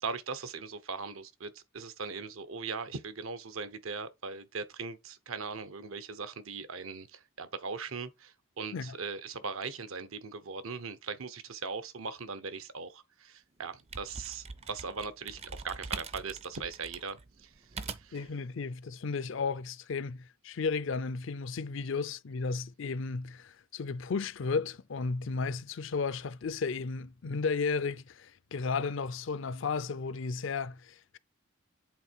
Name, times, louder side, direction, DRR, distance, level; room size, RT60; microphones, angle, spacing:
voice 1, 0.0-17.5 17.8-18.2, right 4 dB, 75° right, 0.9 m, -39 dB
sound 1, 13.6-18.3, right 5 dB, 30° right, 0.5 m, -43 dB
voice 2, 18.1-31.2, left 4 dB, 60° left, 0.5 m, -34 dB
8.1 x 3.7 x 4.4 m
head